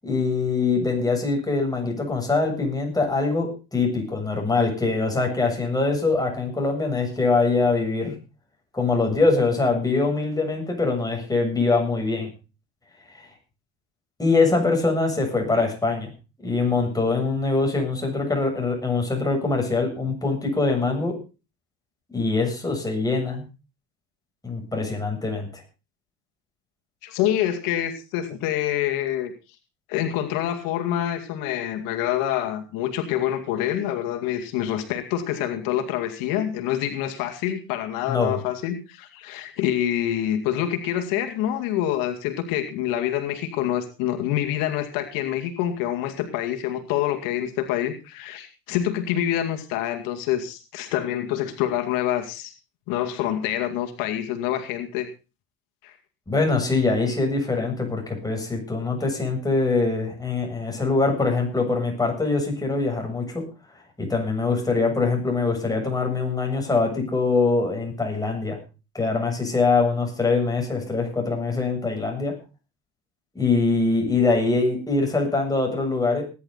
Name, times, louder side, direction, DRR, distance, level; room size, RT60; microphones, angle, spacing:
voice 1, 0.0-8.1 8.7-12.3 14.2-16.1 16.4-21.1 22.1-23.4 24.4-25.5 38.1-38.4 56.3-63.4 64.0-68.6 68.9-72.3 73.3-76.2, left 3 dB, 10° left, 1 dB, 7.7 m, -23 dB
voice 2, 27.0-29.3 29.9-52.5 52.9-55.1 55.8-55.9, left 11 dB, 80° left, 6 dB, 2.3 m, -26 dB
19.0 x 11.0 x 4.0 m, 0.32 s
supercardioid pair, 100°, 33 cm